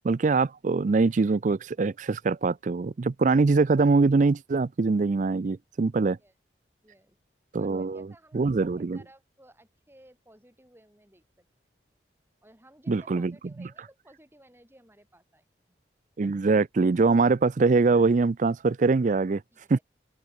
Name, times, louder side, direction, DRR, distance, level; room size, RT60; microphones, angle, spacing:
voice 1, 0.0-6.2 7.5-8.1 8.3-9.0 12.9-13.3 13.6-13.7 16.2-19.4 19.7-19.8, right 4 dB, 45° right, 0.4 m, -23 dB
voice 2, 6.8-7.2 7.6-11.5 12.4-15.5 19.5-19.8, right 1 dB, 15° right, 7.8 m, -57 dB
open air
head